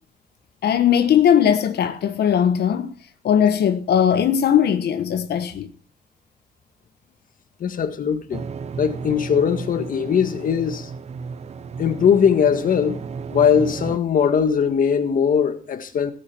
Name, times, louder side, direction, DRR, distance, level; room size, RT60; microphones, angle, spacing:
voice 1, 0.6-2.9 3.2-5.7, left 9 dB, 85° left, 1.2 m, -19 dB
voice 2, 7.6-8.4 8.8-10.9 11.8-13.0 13.3-16.1, left 7 dB, 55° left, 1.7 m, -20 dB
sound 1, 8.3-14.0, right 5 dB, 40° right, 0.7 m, -33 dB
17.0 x 9.0 x 4.4 m
wide cardioid pair, 155°, 16 cm